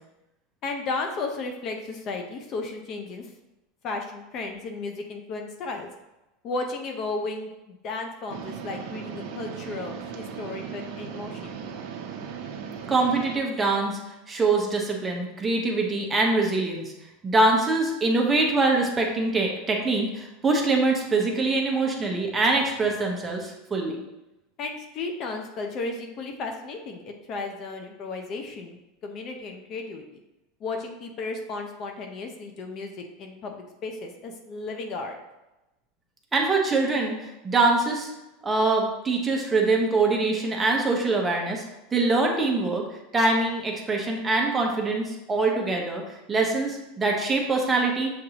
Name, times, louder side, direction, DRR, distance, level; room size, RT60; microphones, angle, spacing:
voice 1, 0.6-3.3 3.8-5.9 6.4-11.6 24.6-28.8 29.0-30.0 30.6-35.2, left 3 dB, 40° left, 4 dB, 0.6 m, -34 dB
sound 1, 8.3-13.4, right 7 dB, 60° right, 0.5 m, -37 dB
voice 2, 12.9-16.9 17.2-24.0 36.3-38.1 38.4-41.6 41.9-42.8 43.1-46.0 46.3-48.1, right 3 dB, 15° right, 0 dB, 0.8 m, -24 dB
6.8 x 2.6 x 2.9 m, 0.97 s
supercardioid pair, 140°, 0 cm